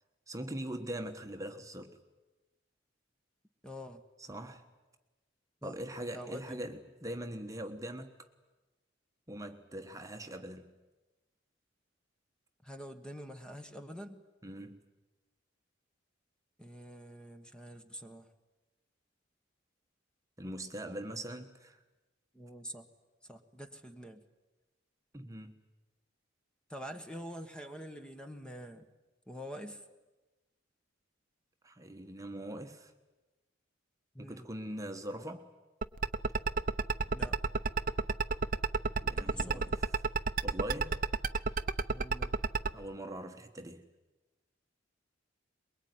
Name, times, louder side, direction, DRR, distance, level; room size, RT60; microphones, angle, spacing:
voice 1, 0.3-2.0 4.2-4.7 5.6-8.3 9.3-10.8 14.4-14.8 20.4-21.8 25.1-25.6 31.6-32.9 34.2-35.5 39.0-39.9 40.4-41.0 42.7-43.9, right 1 dB, 15° right, 1.3 m, -42 dB
voice 2, 3.6-4.0 5.6-5.7 6.1-6.6 12.6-14.2 16.6-18.3 22.3-22.9 23.3-24.2 26.7-28.9 29.3-29.8 34.1-34.5 37.1-37.4 39.2-39.7 41.9-42.3, equal, 5° left, 1.3 m, -46 dB
sound 1, 35.8-42.7, right 4 dB, 45° right, 0.8 m, -29 dB
23.0 x 22.0 x 9.5 m
head